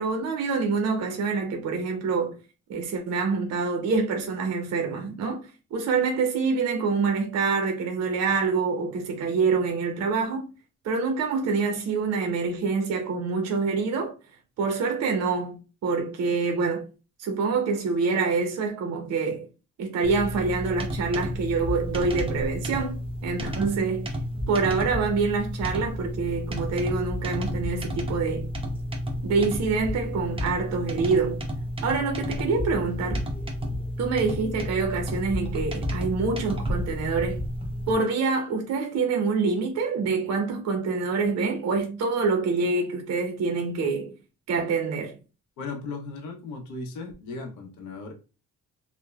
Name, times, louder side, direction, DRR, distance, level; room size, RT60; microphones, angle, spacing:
voice 1, 0.0-2.4 2.7-10.5 10.8-14.1 14.6-16.9 17.2-19.5 19.8-24.1 24.5-28.5 29.2-31.4 31.8-33.3 34.0-37.4 37.9-44.1 44.5-45.1, right 4 dB, 60° right, 0.6 m, -26 dB
sound 1, 20.0-37.9, equal, 20° right, 0.7 m, -31 dB
voice 2, 23.4-23.7 45.6-48.1, left 3 dB, 85° left, 0.7 m, -37 dB
3.0 x 2.0 x 2.2 m
cardioid pair, 90°, 30 cm